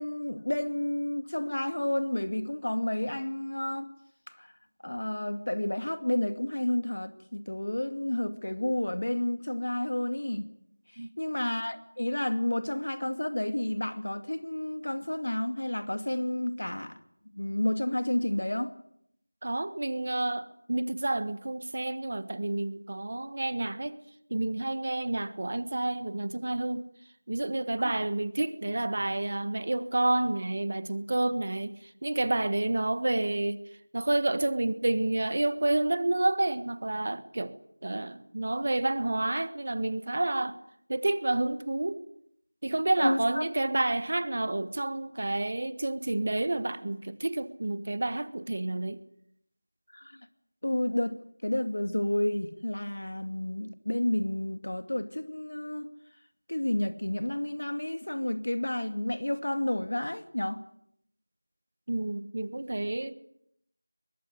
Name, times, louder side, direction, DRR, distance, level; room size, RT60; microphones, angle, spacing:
voice 1, 0.0-3.9 4.4-4.5 4.8-10.5 11.2-17.0 17.4-18.7 27.8-27.9 43.0-43.4 49.9-50.2 50.6-55.9 56.5-60.6, left 1 dB, 65° left, 2.4 m, -30 dB
voice 2, 19.4-24.0 24.3-26.8 27.3-33.6 33.9-37.6 37.8-40.6 40.9-42.0 42.6-49.0 61.9-63.1, right 2 dB, 40° right, 1.4 m, -29 dB
23.5 x 21.5 x 9.7 m
figure-of-eight pair, 175°, 0 cm